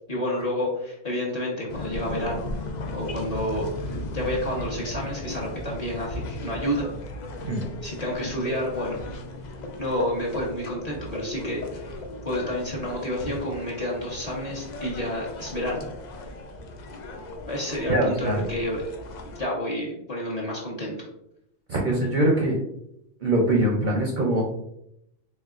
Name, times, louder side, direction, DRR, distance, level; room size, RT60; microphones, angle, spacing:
voice 1, 0.1-2.5 2.9-6.9 7.4-7.5 7.8-9.0 9.8-12.0 12.2-15.9 17.5-18.9 19.3-21.1, left 1 dB, 35° left, -4 dB, 1.0 m, -30 dB
sound 1, 1.7-19.4, left 1 dB, 65° left, 0.4 m, -36 dB
voice 2, 17.9-18.5 21.7-22.6 23.2-24.4, right 1 dB, 50° right, -1 dB, 0.7 m, -23 dB
4.3 x 3.3 x 2.4 m, 0.78 s
omnidirectional pair, 1.3 m